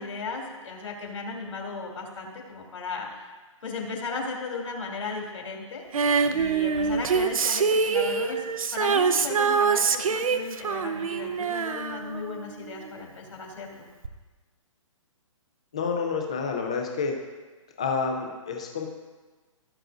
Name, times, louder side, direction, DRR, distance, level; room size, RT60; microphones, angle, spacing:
voice 1, 0.0-3.3 3.6-5.8 6.3-8.4 8.7-13.9, left 4 dB, 70° left, 0 dB, 2.6 m, -36 dB
Female singing, 5.9-12.9 14.0-14.1, right 5 dB, 85° right, 0.7 m, -25 dB
voice 2, 15.7-17.1 17.8-18.9, left 5 dB, 10° left, 2 dB, 0.4 m, -29 dB
16.5 x 7.8 x 2.5 m, 1.3 s
hypercardioid pair, 180°, 17 cm